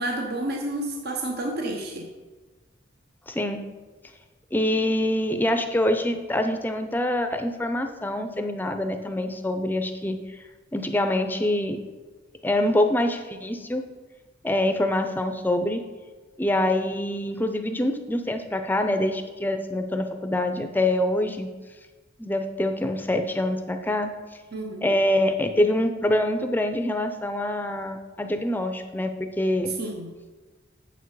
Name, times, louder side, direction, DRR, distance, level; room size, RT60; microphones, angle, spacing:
voice 1, 0.0-2.1 24.5-24.9 29.8-30.1, right 1 dB, 55° right, 2 dB, 0.9 m, -30 dB
voice 2, 3.3-3.6 4.5-10.2 10.7-11.8 12.4-13.8 14.4-15.8 16.4-21.5 22.2-24.1 24.8-29.7, left 1 dB, 10° left, 7 dB, 0.6 m, -25 dB
8.1 x 7.4 x 4.8 m, 1.3 s
head